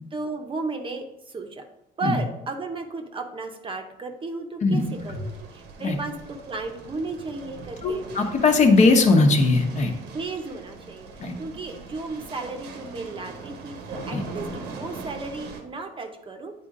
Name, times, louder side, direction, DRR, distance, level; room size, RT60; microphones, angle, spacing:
voice 1, 0.1-1.6 2.0-8.2 10.1-11.1 11.4-16.5, right 3 dB, 30° right, 5 dB, 0.8 m, -34 dB
voice 2, 4.6-5.2 5.8-6.0 7.8-9.9 11.2-11.3 14.1-14.2, left 3 dB, 45° left, 3 dB, 1.1 m, -19 dB
sound 1, 4.8-15.6, right 4 dB, 85° right, 1.1 m, -41 dB
8.6 x 4.2 x 3.8 m, 0.90 s
cardioid pair, 110°, 17 cm